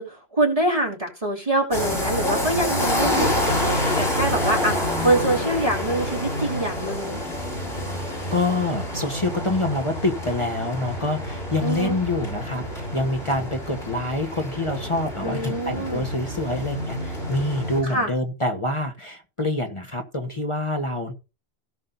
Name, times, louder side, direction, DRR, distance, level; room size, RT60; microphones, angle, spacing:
voice 1, 0.0-7.2 11.6-12.0 15.2-16.1 17.8-18.1, right 1 dB, 35° right, -3 dB, 2.7 m, -25 dB
sound 1, 1.7-17.8, left 1 dB, 80° left, 7.7 m, -28 dB
voice 2, 8.3-21.1, left 2 dB, 30° left, 3 dB, 1.3 m, -26 dB
17.0 x 7.4 x 2.7 m, 0.29 s
omnidirectional pair, 1.1 m